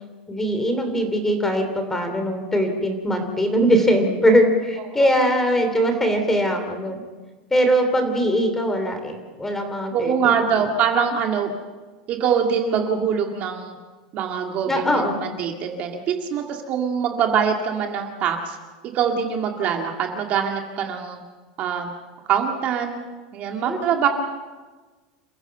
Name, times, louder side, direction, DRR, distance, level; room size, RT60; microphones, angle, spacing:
voice 1, 0.3-6.9 7.5-10.3 14.7-15.2 23.7-24.1, equal, 10° left, 6 dB, 2.9 m, -21 dB
voice 2, 9.9-11.5 12.1-13.8 14.1-18.6 18.8-21.2 21.6-21.9 22.3-23.0 23.3-24.1, right 7 dB, 35° right, 3 dB, 2.0 m, -23 dB
28.5 x 15.5 x 7.0 m, 1.3 s
supercardioid pair, 160°, 4 cm